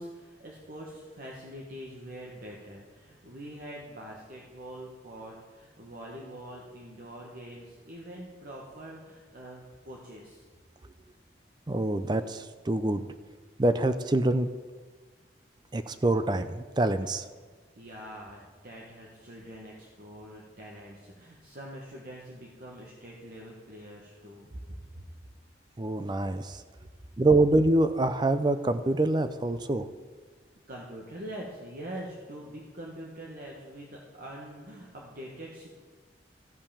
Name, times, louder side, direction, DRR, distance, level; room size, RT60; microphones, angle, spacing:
voice 1, 0.0-10.4 17.8-25.0 30.7-35.7, right 1 dB, 55° right, -3 dB, 1.4 m, -44 dB
voice 2, 11.7-13.0 13.6-14.5 15.7-17.2 25.8-26.6 27.2-29.9, right 2 dB, 25° right, 11 dB, 0.5 m, -25 dB
14.0 x 5.6 x 7.0 m, 1.4 s
head